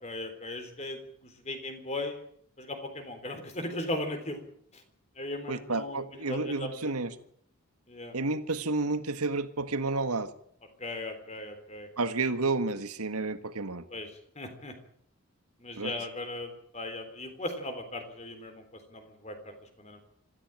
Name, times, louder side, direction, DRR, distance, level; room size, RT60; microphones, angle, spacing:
voice 1, 0.0-2.2 2.6-4.4 5.2-6.0 6.3-7.1 7.9-8.1 10.8-11.9 13.9-14.1 14.4-14.7 15.6-20.0, left 1 dB, 30° left, 3.6 m, -38 dB
voice 2, 5.5-7.1 8.1-10.3 12.0-13.8 15.8-15.9, right 3 dB, 85° right, 1.7 m, -31 dB
25.0 x 14.5 x 9.0 m
head